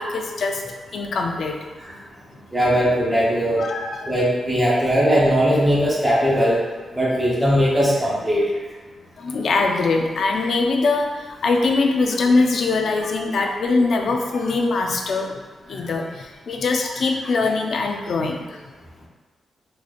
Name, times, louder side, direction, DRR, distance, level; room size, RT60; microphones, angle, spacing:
voice 1, 0.0-1.5 3.6-4.1 9.2-15.3 15.7-18.6, left 3 dB, 55° left, 3 dB, 0.4 m, -22 dB
voice 2, 2.5-3.6 4.1-6.6 6.9-8.5, equal, 10° right, -6 dB, 0.7 m, -19 dB
4.0 x 3.1 x 2.4 m, 1.3 s
wide cardioid pair, 175°, 0 cm